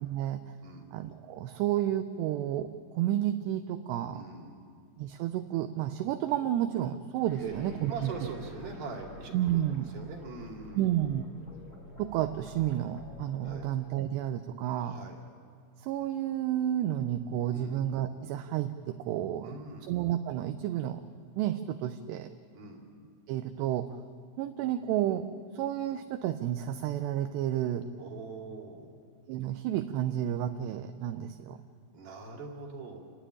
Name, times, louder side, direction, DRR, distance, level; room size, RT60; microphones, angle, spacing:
voice 1, 0.0-0.4 0.9-4.2 5.0-8.1 9.3-9.9 10.7-11.3 12.0-15.0 15.8-19.6 19.9-21.0 21.4-22.3 23.3-23.9 24.4-25.3 25.5-27.9 29.3-31.6, right 12 dB, 80° right, 8 dB, 2.7 m, -31 dB
voice 2, 4.1-4.7 7.4-10.9 13.4-13.7 14.8-15.2 17.5-17.8 19.4-19.9 22.5-22.8 28.0-29.0 31.9-33.0, right 4 dB, 60° right, 0 dB, 4.1 m, -43 dB
sound 1, 7.2-13.8, left 2 dB, 20° left, 1.8 m, -49 dB
27.5 x 12.0 x 10.0 m, 2.2 s
omnidirectional pair, 5.1 m